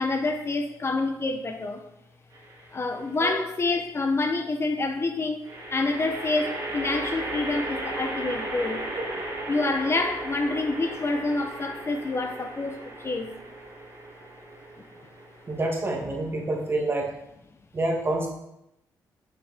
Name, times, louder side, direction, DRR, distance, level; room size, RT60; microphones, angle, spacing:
voice 1, 0.0-1.8 2.7-5.4 5.7-8.8 9.5-13.3, left 3 dB, 35° left, 6 dB, 0.6 m, -27 dB
sound 1, 2.3-2.9 5.4-16.8, right 1 dB, 65° right, 2.3 m, -36 dB
voice 2, 15.5-17.1 17.7-18.3, right 2 dB, 35° right, 0 dB, 1.6 m, -27 dB
6.4 x 5.8 x 3.4 m, 0.86 s
cardioid pair, 80°, 7 cm